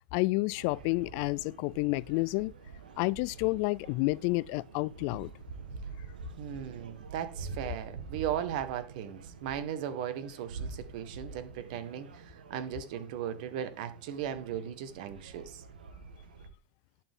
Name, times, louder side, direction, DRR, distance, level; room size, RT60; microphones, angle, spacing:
voice 1, 0.1-2.5 3.0-5.3, left 24 dB, 60° left, 0.3 m, -30 dB
sound 1, 0.6-16.5, right 4 dB, 90° right, 1.4 m, -46 dB
voice 2, 6.4-15.6, right 9 dB, 65° right, 1.5 m, -37 dB
11.0 x 5.9 x 3.7 m
hypercardioid pair, 105°, 5 cm